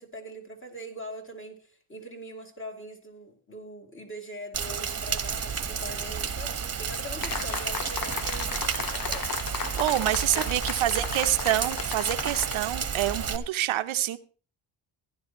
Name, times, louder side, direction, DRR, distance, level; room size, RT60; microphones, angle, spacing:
voice 1, 0.0-9.3 10.3-11.4, equal, 25° left, 2 dB, 2.6 m, -42 dB
Rain, 4.5-13.4, right 6 dB, 30° right, 1.1 m, -32 dB
sound 1, 7.2-12.6, left 7 dB, 45° left, 0.9 m, -35 dB
voice 2, 9.8-14.2, right 13 dB, 70° right, 10 dB, 0.7 m, -27 dB
15.5 x 11.0 x 3.0 m, 0.39 s
cardioid pair, 110°, 50 cm